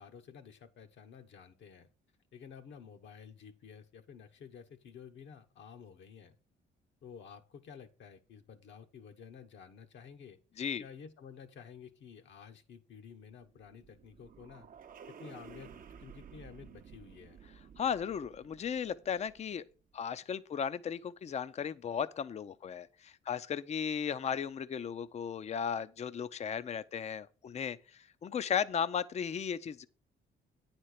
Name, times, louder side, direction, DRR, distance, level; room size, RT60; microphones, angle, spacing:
voice 1, 0.0-1.9 2.3-6.4 7.0-10.4 10.8-14.7 15.1-17.4, left 7 dB, 70° left, 1.1 m, -52 dB
sound 1, 13.2-19.7, right 7 dB, 45° right, 0.6 m, -54 dB
voice 2, 17.8-19.6 19.9-29.9, left 7 dB, 35° left, 0.4 m, -36 dB
9.3 x 4.4 x 6.5 m
cardioid pair, 90°, 20 cm